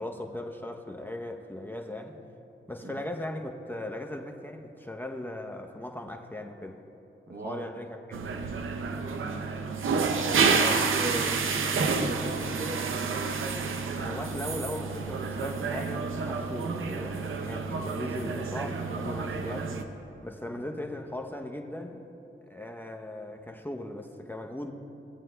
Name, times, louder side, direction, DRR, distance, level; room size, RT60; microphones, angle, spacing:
voice 1, 0.0-2.2 2.7-6.8 7.3-8.3 10.2-10.8 14.0-19.8 20.2-22.0 22.4-24.7, left 1 dB, 10° left, 2 dB, 0.7 m, -38 dB
voice 2, 7.3-7.7 8.9-9.4 10.2-13.3 20.5-20.6, right 2 dB, 50° right, 3 dB, 1.0 m, -38 dB
sound 1, 8.1-19.8, right 5 dB, 80° right, 0.6 m, -29 dB
17.5 x 9.0 x 2.2 m, 2.9 s
cardioid pair, 50°, 21 cm